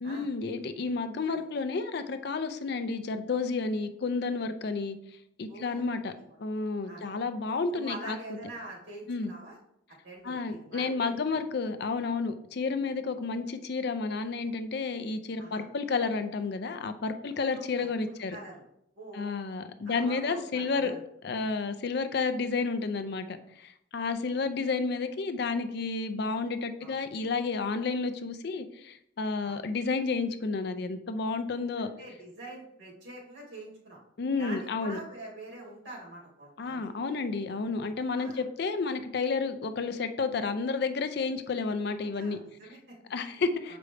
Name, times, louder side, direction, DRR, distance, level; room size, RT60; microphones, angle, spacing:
voice 1, 0.0-5.0 5.4-6.1 6.4-8.2 9.1-9.3 10.2-18.4 19.1-20.9 21.2-31.9 34.2-35.0 36.6-42.4 43.1-43.8, left 4 dB, 55° left, 10 dB, 0.4 m, -31 dB
voice 2, 5.5-5.8 6.8-7.1 7.7-9.6 10.0-11.4 15.4-15.6 17.4-18.7 19.0-19.3 19.8-21.0 26.8-26.9 29.4-29.6 31.8-34.0 34.4-36.9 38.2-38.4 42.1-43.0 43.3-43.8, right 2 dB, 65° right, -4 dB, 2.4 m, -45 dB
6.8 x 5.0 x 3.3 m, 0.77 s
head